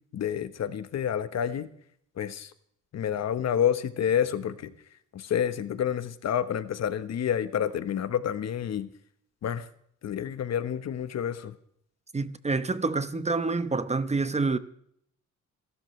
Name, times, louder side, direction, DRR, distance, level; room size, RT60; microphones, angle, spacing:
voice 1, 0.1-1.7 2.2-2.5 2.9-4.7 5.1-8.9 9.4-9.7 10.0-11.5, left 9 dB, 60° left, 1.2 m, -29 dB
voice 2, 12.1-14.6, right 3 dB, 20° right, 1.0 m, -27 dB
26.0 x 13.0 x 3.3 m
cardioid pair, 90°, 30 cm